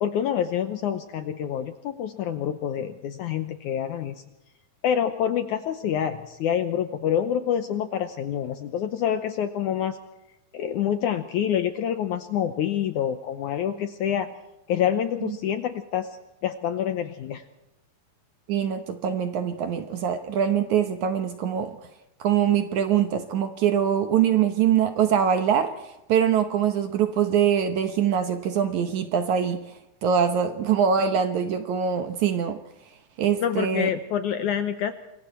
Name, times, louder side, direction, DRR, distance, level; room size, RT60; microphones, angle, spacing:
voice 1, 0.0-4.2 4.8-10.0 10.5-14.3 14.7-16.1 16.4-17.4 33.4-34.9, left 9 dB, 75° left, 9 dB, 1.9 m, -27 dB
voice 2, 18.5-21.8 22.2-29.6 30.0-32.6 33.2-33.9, right 8 dB, 65° right, 7 dB, 2.1 m, -23 dB
27.0 x 22.5 x 4.4 m, 0.91 s
omnidirectional pair, 4.4 m